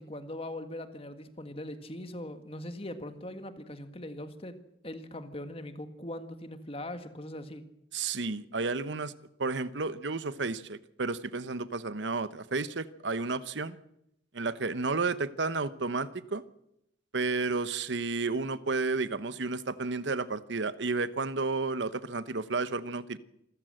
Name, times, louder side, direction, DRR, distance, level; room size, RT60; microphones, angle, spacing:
voice 1, 0.0-4.6 4.8-7.6, left 1 dB, 30° left, 1.7 m, -41 dB
voice 2, 7.9-9.1 9.4-13.8 14.3-16.4 17.1-23.2, right 3 dB, 70° right, 1.0 m, -32 dB
27.0 x 14.5 x 7.7 m
head